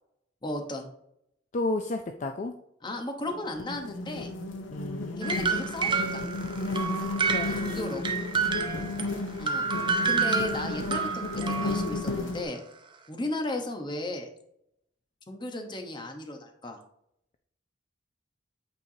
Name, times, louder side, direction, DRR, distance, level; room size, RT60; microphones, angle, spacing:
voice 1, 0.4-0.9 2.8-4.3 5.2-6.3 7.5-8.0 9.4-9.7 10.0-12.6 13.1-14.3 15.3-16.8, left 1 dB, 25° left, 4 dB, 0.9 m, -35 dB
voice 2, 1.5-2.5 4.7-5.4 7.2-7.6 8.6-9.0, left 2 dB, 40° left, 5 dB, 0.4 m, -33 dB
sound 1, 3.3-12.4, left 2 dB, 85° left, 0.8 m, -33 dB
sound 2, 5.2-9.1 9.5-12.1, right 5 dB, 25° right, 0.6 m, -29 dB
8.4 x 4.5 x 2.7 m, 0.75 s
head